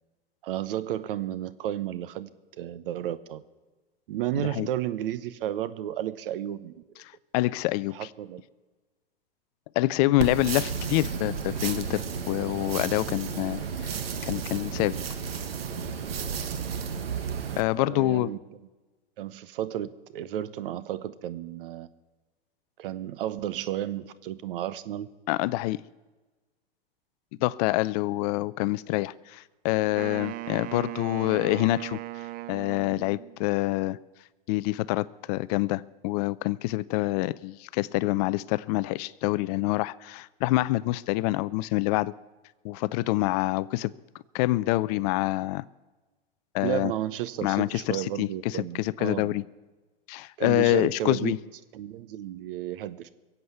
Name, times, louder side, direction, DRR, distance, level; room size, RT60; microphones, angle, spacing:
voice 1, 0.4-2.3 2.6-3.4 4.1-6.7 7.9-8.4 17.7-18.4 19.2-21.9 22.8-25.1 46.6-49.4 50.4-51.4 51.7-53.1, right 12 dB, 65° right, 15 dB, 1.0 m, -32 dB
voice 2, 7.3-8.1 9.8-13.9 14.2-15.0 17.6-18.3 25.3-25.8 27.4-32.0 32.5-34.0 34.5-42.1 42.6-43.9 44.3-45.6 46.5-46.9 47.4-49.4 50.1-51.4, left 19 dB, 45° left, 19 dB, 0.5 m, -26 dB
sound 1, 10.2-17.6, right 6 dB, 85° right, 1.5 m, -32 dB
Wind instrument woodwind instrument, 30.0-33.4, right 17 dB, 45° right, 0.7 m, -38 dB
22.0 x 8.1 x 8.0 m, 1.2 s
hypercardioid pair, 120°, 29 cm